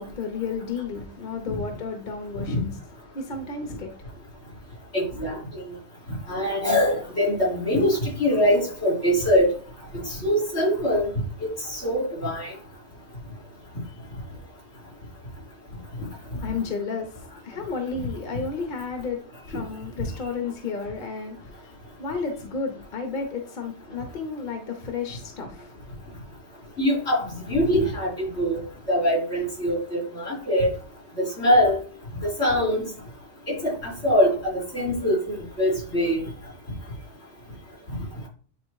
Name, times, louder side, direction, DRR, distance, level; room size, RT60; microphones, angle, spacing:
voice 1, 0.0-2.7 3.1-4.0 16.1-25.7, left 5 dB, 50° left, 1.1 m, -32 dB
voice 2, 4.9-5.6 6.3-9.5 10.0-11.1 11.4-12.5 16.4-16.5 26.8-28.6 28.9-30.7 31.2-31.8 32.4-32.9 33.5-36.2, equal, 85° left, 3.8 m, -23 dB
9.8 x 4.3 x 2.4 m
omnidirectional pair, 1.1 m